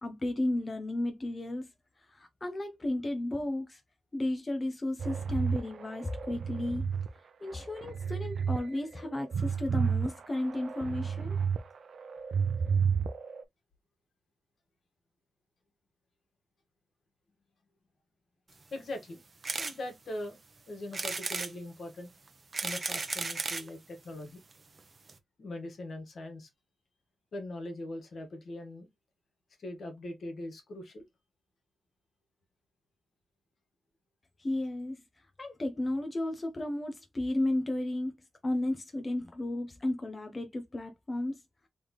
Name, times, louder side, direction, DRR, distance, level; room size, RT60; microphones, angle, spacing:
voice 1, 0.0-1.7 2.0-3.8 4.1-6.9 7.4-11.4 34.4-35.0 35.4-38.1 38.4-41.4, left 1 dB, 25° left, 0.7 m, -33 dB
sound 1, 5.0-7.1 7.5-8.6 9.0-11.6 11.9-13.4, right 6 dB, 80° right, 0.5 m, -31 dB
voice 2, 18.7-19.2 19.6-20.4 20.7-22.1 22.6-24.4 25.4-26.5 27.3-28.9 29.6-31.0, left 1 dB, 70° left, 1.7 m, -41 dB
sound 2, 19.4-19.8 20.2-20.3 20.9-21.5 22.3-23.7 24.5-24.6 24.8-24.9 25.1-25.2, right 3 dB, 35° right, 0.7 m, -34 dB
3.5 x 3.2 x 3.9 m
wide cardioid pair, 140°, 0 cm